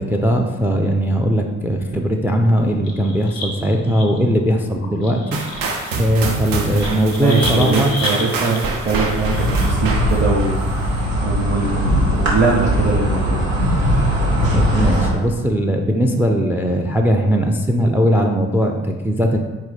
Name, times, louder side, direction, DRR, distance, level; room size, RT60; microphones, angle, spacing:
voice 1, 0.0-5.4 5.9-7.9 14.5-19.4, equal, 5° right, 4 dB, 0.3 m, -19 dB
sound 1, 2.7-4.3 4.7-9.8, left 2 dB, 90° left, 0.5 m, -31 dB
sound 2, 5.3-11.2, right 3 dB, 60° right, 0.8 m, -26 dB
voice 2, 6.7-10.9 11.2-13.4, right 3 dB, 25° right, -5 dB, 0.9 m, -22 dB
Insect, 9.0-15.1, equal, 90° right, 0.8 m, -19 dB
4.1 x 2.6 x 4.0 m, 1.2 s
figure-of-eight pair, 40°, 39 cm